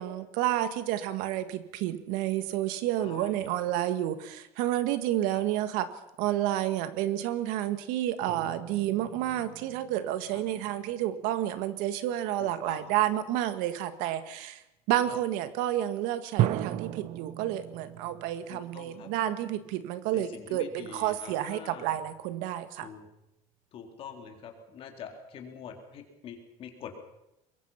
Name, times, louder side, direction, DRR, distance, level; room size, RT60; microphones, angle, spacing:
voice 1, 0.0-5.9 6.2-14.6 14.9-22.9, right 13 dB, 85° right, 11 dB, 1.9 m, -30 dB
voice 2, 3.0-3.5 5.3-5.4 10.3-10.7 12.4-13.1 15.0-15.2 18.5-19.1 20.1-22.0 22.8-23.1 23.7-26.9, left 7 dB, 45° left, 3 dB, 4.0 m, -45 dB
sound 1, 8.3-11.2 11.8-12.1 16.4-20.7, right 13 dB, 60° right, 1.2 m, -36 dB
23.0 x 22.5 x 5.9 m, 0.87 s
cardioid pair, 160°, 14 cm